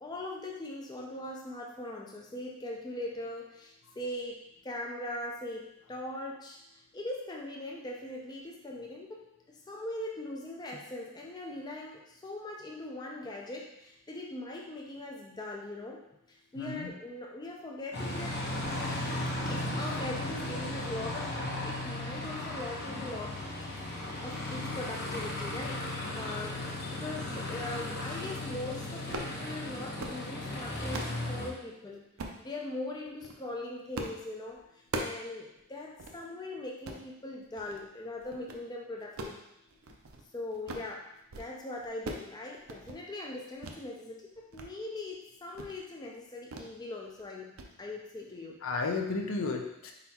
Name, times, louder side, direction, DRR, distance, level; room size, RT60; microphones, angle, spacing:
voice 1, 0.0-6.6 6.9-18.5 19.5-23.4 23.9-25.9 26.1-32.1 32.4-39.4 40.3-48.7, left 1 dB, 20° left, -1 dB, 0.4 m, -41 dB
voice 2, 16.6-16.9 25.9-26.1 26.8-26.9 48.6-49.9, left 3 dB, 70° left, 3 dB, 0.6 m, -33 dB
Aircraft, 17.9-31.5, left 1 dB, 50° left, 1.0 m, -36 dB
sound 1, 29.1-29.4 29.8-30.2 30.6-31.2 32.2-32.4 33.1-33.4 33.9-34.2 34.5-35.3 35.6-35.7 36.0-36.2 36.7-37.0 37.6-37.9 38.2-38.6 39.0-40.2 40.5-40.9 41.2-41.5 41.8-42.3 42.6-43.0 43.6-43.8 44.2-44.7 45.0-45.1 45.5-45.8 46.5-46.7 47.0-47.2 47.6-47.7, right 2 dB, 75° right, 0.5 m, -40 dB
4.2 x 4.0 x 2.9 m, 0.84 s
head